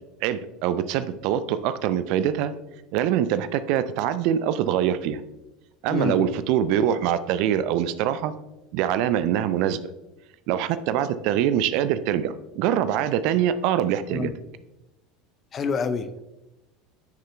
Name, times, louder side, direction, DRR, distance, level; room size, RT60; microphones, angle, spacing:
voice 1, 0.2-2.5 2.9-5.2 5.8-8.3 8.7-9.8 10.5-14.3, right 10 dB, 55° right, 13 dB, 0.5 m, -24 dB
voice 2, 5.9-6.3 14.1-14.3 15.5-16.2, left 5 dB, 35° left, 11 dB, 0.7 m, -27 dB
13.5 x 6.5 x 2.3 m, 0.99 s
figure-of-eight pair, 70°, 0 cm